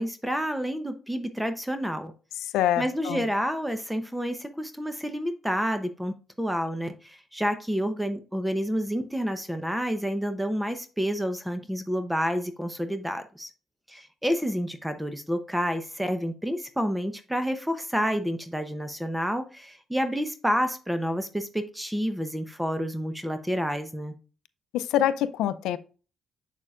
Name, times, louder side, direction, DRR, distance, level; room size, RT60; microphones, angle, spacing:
voice 1, 0.0-2.1 2.8-13.5 13.9-24.1, equal, 5° right, 0.8 m, -29 dB
voice 2, 2.5-3.2 24.7-25.8, left 11 dB, 90° left, 0.5 m, -25 dB
7.3 x 6.6 x 2.4 m
cardioid pair, 90°, 0 cm